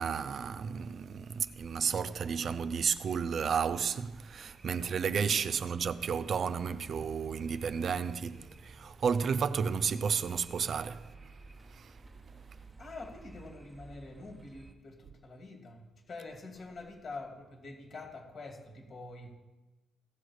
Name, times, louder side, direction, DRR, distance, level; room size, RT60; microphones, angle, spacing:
voice 1, 0.0-11.3 11.7-11.9, right 6 dB, 55° right, 0.4 m, -32 dB
sound 1, 1.4-14.7, right 3 dB, 15° right, 1.1 m, -54 dB
voice 2, 12.5-19.4, left 3 dB, 50° left, 2.7 m, -46 dB
16.0 x 6.3 x 4.9 m
cardioid pair, 90°, 0 cm